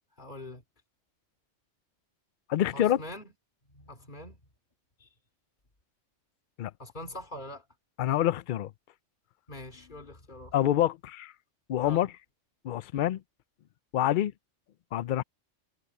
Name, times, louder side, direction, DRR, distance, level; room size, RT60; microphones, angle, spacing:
voice 1, 0.2-0.6 2.7-3.3 3.7-4.4 5.0-5.1 6.8-7.7 9.5-10.6 11.8-12.1, left 1 dB, 40° left, 3.1 m, -43 dB
voice 2, 2.5-3.0 6.6-6.7 8.0-8.7 10.5-11.3 11.7-12.1 12.6-13.2 13.9-14.3 14.9-15.2, left 12 dB, 60° left, 0.5 m, -26 dB
omnidirectional pair, 1.3 m